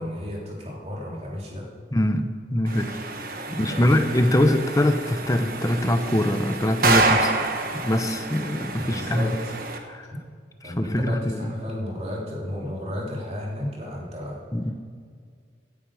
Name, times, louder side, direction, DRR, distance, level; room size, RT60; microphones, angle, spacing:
voice 1, 0.0-1.7 3.5-4.0 8.7-9.3 10.6-14.4, left 1 dB, 35° right, -3 dB, 3.4 m, -33 dB
voice 2, 1.9-2.9 3.5-7.5 7.8-9.4 9.9-10.1 10.6-11.5 14.5-14.7, left 1 dB, 20° left, 8 dB, 0.8 m, -23 dB
sound 1, 2.7-9.8, right 3 dB, 50° right, 1.2 m, -28 dB
16.5 x 10.0 x 5.0 m, 2.1 s
head